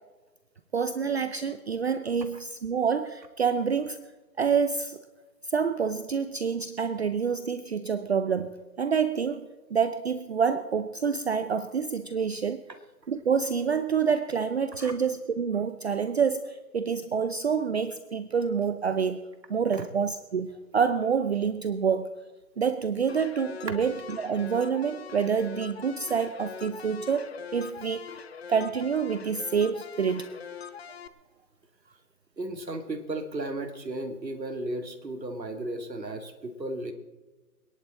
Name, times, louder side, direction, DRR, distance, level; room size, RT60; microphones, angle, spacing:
voice 1, 0.7-4.0 4.4-5.0 5.5-12.6 13.1-22.1 22.6-28.0 28.5-30.3, right 6 dB, 40° right, 11 dB, 0.6 m, -27 dB
sound 1, 23.1-31.1, left 7 dB, 40° left, 0.7 m, -43 dB
voice 2, 32.4-36.9, right 1 dB, 90° right, 7 dB, 2.3 m, -34 dB
24.5 x 11.0 x 4.2 m, 1.2 s
figure-of-eight pair, 145°, 49 cm